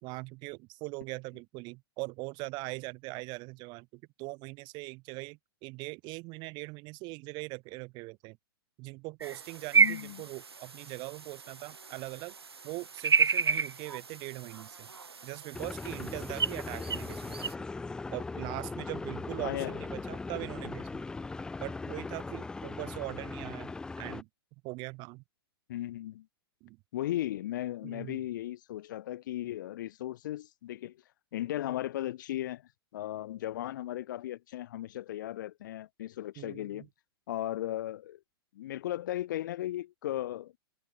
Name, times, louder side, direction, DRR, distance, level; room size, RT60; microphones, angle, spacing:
voice 1, 0.0-8.4 8.8-12.3 12.6-14.9 15.2-17.5 18.1-21.0 21.6-24.3 24.6-25.2 26.6-26.8 27.8-28.2 36.4-36.9, right 25 dB, 35° right, 1.7 m, -41 dB
sound 1, 9.2-17.5, right 5 dB, 80° right, 0.8 m, -31 dB
voice 2, 9.8-10.2 19.4-19.7 25.7-26.3 26.9-31.0 31.3-32.6 32.9-36.9 37.3-38.2 38.5-40.5, left 13 dB, 50° left, 0.6 m, -36 dB
sound 2, 15.5-24.2, left 3 dB, 5° left, 0.4 m, -39 dB
figure-of-eight pair, 105°, 13 cm